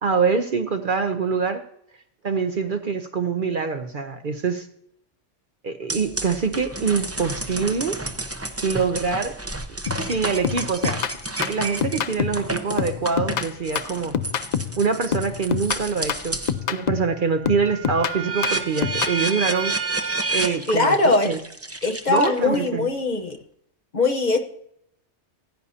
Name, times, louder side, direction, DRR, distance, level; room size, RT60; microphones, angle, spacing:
voice 1, 0.0-1.6 2.2-4.7 5.6-8.0 8.6-9.3 10.0-11.0 11.5-14.2 14.8-16.4 16.7-19.7 20.3-21.4 22.1-22.9, right 5 dB, 50° right, 7 dB, 0.8 m, -24 dB
sound 1, 5.9-16.6 17.0-22.7, right 2 dB, 15° right, 0.7 m, -30 dB
sound 2, 9.9-10.1 10.4-12.5 12.8-14.8 15.1-17.2 17.5-19.2, left 8 dB, 60° left, 0.4 m, -27 dB
voice 2, 20.7-21.3 21.8-23.4 23.9-24.4, left 3 dB, 40° left, 3 dB, 1.0 m, -21 dB
16.0 x 9.8 x 2.8 m, 0.70 s
omnidirectional pair, 1.3 m